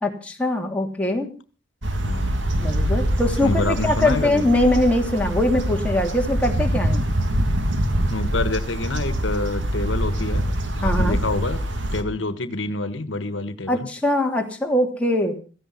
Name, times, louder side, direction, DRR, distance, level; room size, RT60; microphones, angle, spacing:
voice 1, 0.0-1.3 2.5-7.0 10.8-11.2 13.7-15.4, left 1 dB, 5° left, 0 dB, 3.0 m, -22 dB
sound 1, 1.8-12.0, equal, 80° right, 2.4 m, -24 dB
voice 2, 2.0-2.4 3.4-4.5 8.1-10.4 10.8-11.6 11.9-13.9, left 2 dB, 85° left, 12 dB, 1.4 m, -27 dB
17.0 x 15.0 x 5.7 m, 0.38 s
head